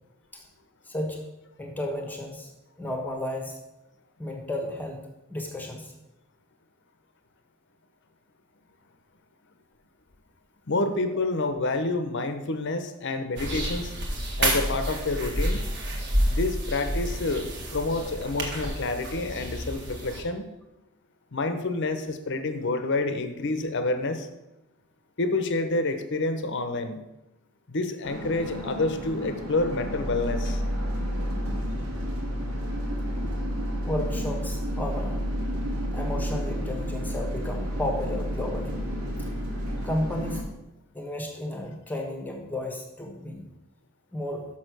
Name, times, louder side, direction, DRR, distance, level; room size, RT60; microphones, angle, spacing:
voice 1, 0.8-1.2 1.6-2.5 2.8-3.6 4.2-5.9 33.8-35.2 35.9-38.8 39.8-40.4 40.9-43.5 44.1-44.5, left 1 dB, 10° left, 2 dB, 1.1 m, -33 dB
voice 2, 10.7-13.9 14.4-15.7 16.3-17.5 17.7-20.5 21.3-24.3 25.2-27.0 27.7-30.6, left 2 dB, 55° left, 8 dB, 0.8 m, -28 dB
sound 1, 13.4-20.2, right 1 dB, 55° right, 1.7 m, -29 dB
sound 2, 28.0-40.4, equal, 85° right, 2.2 m, -31 dB
6.5 x 6.0 x 6.1 m, 0.95 s
head